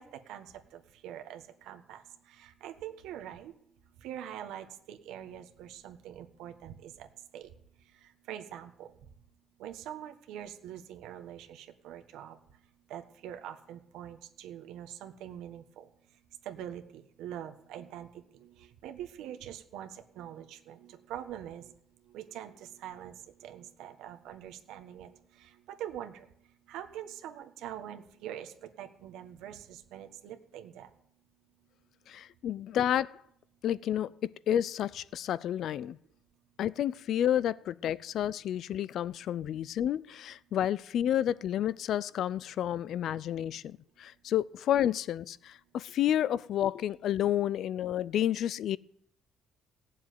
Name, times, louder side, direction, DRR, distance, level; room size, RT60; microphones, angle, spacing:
voice 1, 0.0-3.5 4.0-7.1 7.3-7.5 8.0-8.9 9.6-12.4 12.9-15.9 16.4-21.7 22.1-26.3 26.7-30.9, right 10 dB, 85° right, 1.5 m, -44 dB
voice 2, 32.1-33.2 33.6-36.0 36.6-48.8, left 11 dB, 60° left, 0.5 m, -30 dB
16.5 x 7.4 x 9.4 m
cardioid pair, 125°, 0 cm